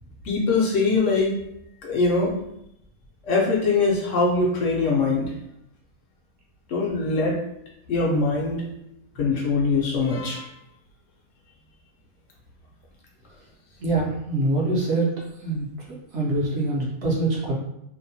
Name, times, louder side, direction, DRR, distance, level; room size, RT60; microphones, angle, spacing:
voice 1, 0.2-1.3 1.8-2.3 3.2-5.3 6.7-7.4 7.9-8.6 9.2-10.5, left 3 dB, 65° left, -2 dB, 0.9 m, -22 dB
voice 2, 13.8-15.1 15.4-17.5, right 2 dB, 60° right, -4 dB, 0.9 m, -25 dB
2.7 x 2.1 x 2.6 m, 0.78 s
omnidirectional pair, 1.5 m